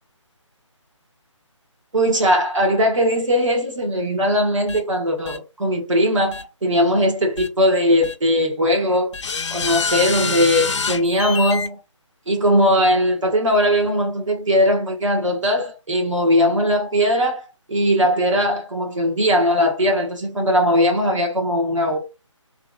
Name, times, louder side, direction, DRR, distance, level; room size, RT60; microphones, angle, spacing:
voice 1, 1.9-9.1 9.5-11.7 12.3-22.0, equal, 70° right, 1.5 m, -19 dB
sound 1, 4.7-4.8 5.3-5.4 6.3-6.4 7.4-7.5 8.0-8.1 9.1-11.7, left 5 dB, 65° left, 0.4 m, -26 dB
3.4 x 2.5 x 2.3 m
figure-of-eight pair, 150°, 16 cm